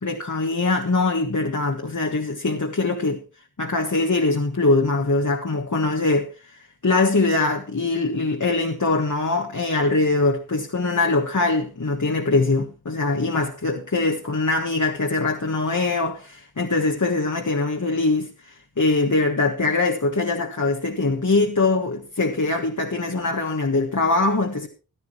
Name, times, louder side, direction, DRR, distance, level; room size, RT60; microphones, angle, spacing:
voice 1, 0.0-3.2 3.6-24.7, left 3 dB, 50° left, 1.6 m, -22 dB
15.5 x 12.0 x 3.2 m
wide cardioid pair, 65°, 37 cm